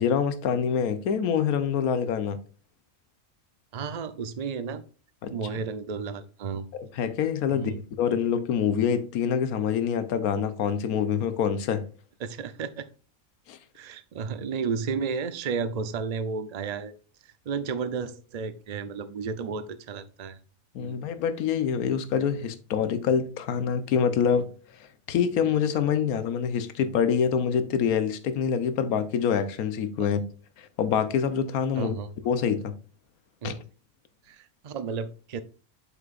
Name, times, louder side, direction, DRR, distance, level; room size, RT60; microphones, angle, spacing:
voice 1, 0.0-2.4 5.2-5.3 6.7-7.7 8.0-11.9 13.5-13.6 20.7-24.5 25.1-30.2 30.6-31.9 32.2-32.7 33.4-33.5, left 7 dB, 85° left, 1.2 m, -26 dB
voice 2, 3.7-4.8 5.3-6.7 7.5-7.8 12.2-12.9 13.8-16.9 17.5-20.4 20.8-21.0 30.0-30.1 31.8-32.1 33.4-33.6 34.3-35.4, right 5 dB, 85° right, 0.3 m, -32 dB
7.8 x 5.9 x 2.4 m
omnidirectional pair, 1.5 m